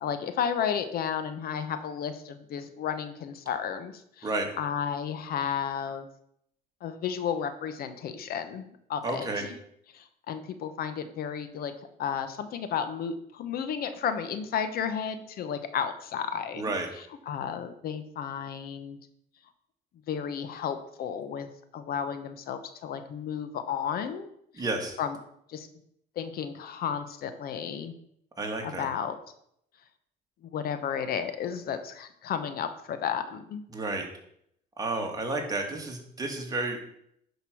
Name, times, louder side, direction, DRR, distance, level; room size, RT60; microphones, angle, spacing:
voice 1, 0.0-6.1 6.8-9.5 9.9-11.7 12.0-16.6 17.3-19.0 20.1-24.3 24.5-24.6 25.0-25.2 25.5-25.7 26.2-27.9 28.6-29.2 30.5-33.6, left 8 dB, 65° left, 10 dB, 1.0 m, -33 dB
voice 2, 9.0-9.4 16.5-16.9 24.6-25.0 28.4-28.9 33.7-34.1 34.8-36.8, right 2 dB, 20° right, 1 dB, 2.4 m, -31 dB
10.5 x 5.3 x 6.2 m, 0.72 s
cardioid pair, 110°, 17 cm